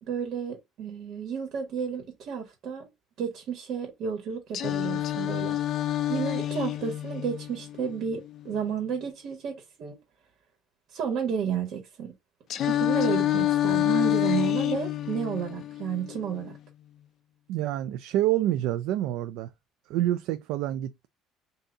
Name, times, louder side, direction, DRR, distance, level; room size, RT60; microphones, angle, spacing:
voice 1, 0.0-2.9 3.2-5.6 6.1-9.9 10.9-12.1 12.7-16.5, right 7 dB, 55° right, 1.4 m, -32 dB
Singing, 4.5-8.5 12.5-16.5, left 13 dB, 45° left, 0.4 m, -28 dB
voice 2, 17.5-19.5 19.9-21.1, right 13 dB, 75° right, 0.3 m, -27 dB
3.9 x 2.7 x 3.4 m
cardioid pair, 145°, 0 cm